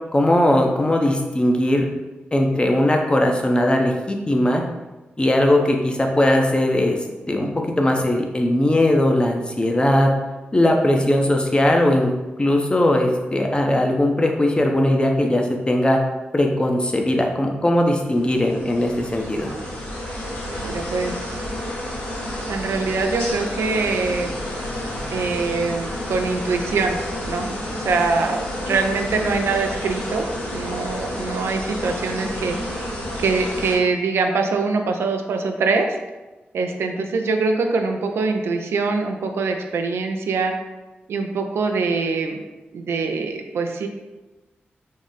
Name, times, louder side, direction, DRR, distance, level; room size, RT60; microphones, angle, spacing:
voice 1, 0.1-1.9 2.3-4.6 5.2-7.0 7.3-10.1 10.5-12.1 12.4-16.0 16.3-19.5, left 1 dB, 25° left, 2 dB, 0.6 m, -19 dB
sound 1, 18.0-33.7, left 1 dB, 75° left, 1.3 m, -30 dB
voice 2, 20.5-21.4 22.5-24.3 25.1-27.0 27.3-30.2 30.5-32.6 33.2-35.9 36.5-40.5 41.1-42.4 42.7-43.9, right 4 dB, 85° right, 4 dB, 0.4 m, -23 dB
3.6 x 2.0 x 3.9 m, 1.1 s
cardioid pair, 55°, 4 cm